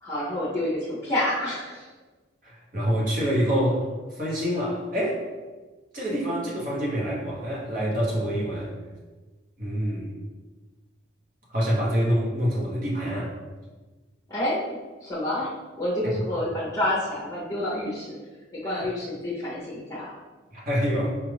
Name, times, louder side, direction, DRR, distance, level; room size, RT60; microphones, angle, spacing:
voice 1, 0.0-1.9 14.3-18.2 18.5-20.2, left 1 dB, 15° left, -7 dB, 0.7 m, -29 dB
voice 2, 2.4-3.8 4.1-5.3 5.9-8.7 9.6-10.1 11.5-13.3 18.6-18.8 20.5-21.1, equal, 45° right, -5 dB, 1.0 m, -26 dB
4.6 x 2.5 x 3.3 m, 1.3 s
head